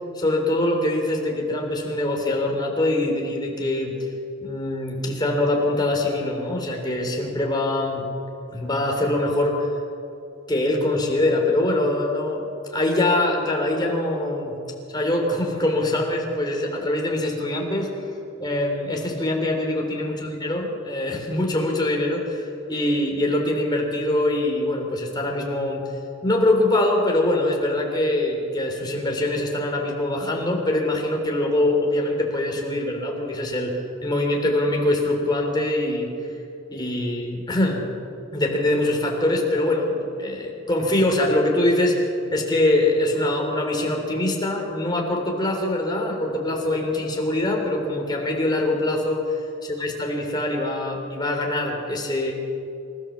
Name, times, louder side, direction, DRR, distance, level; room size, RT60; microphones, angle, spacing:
voice 1, 0.2-3.9 4.4-8.0 8.5-9.7 10.5-14.5 14.9-17.9 18.4-25.8 26.2-33.7 34.0-36.1 36.7-37.8 38.3-49.2 49.6-52.3, left 1 dB, 20° left, 0 dB, 3.6 m, -23 dB
26.5 x 14.0 x 7.4 m, 2.7 s
head